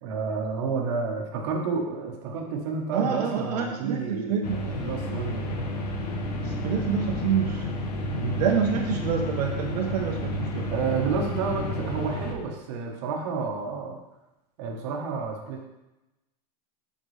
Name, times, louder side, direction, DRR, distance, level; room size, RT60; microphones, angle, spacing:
voice 1, 0.0-4.5 4.8-5.6 8.1-8.4 10.7-14.0 14.6-15.7, right 5 dB, 45° right, 0 dB, 1.2 m, -30 dB
voice 2, 2.9-5.0 6.4-7.7 8.4-10.7, right 7 dB, 80° right, 1 dB, 1.0 m, -27 dB
sound 1, 4.4-12.3, left 1 dB, 80° left, 1.2 m, -31 dB
7.8 x 5.2 x 3.3 m, 0.98 s
supercardioid pair, 170°, 20 cm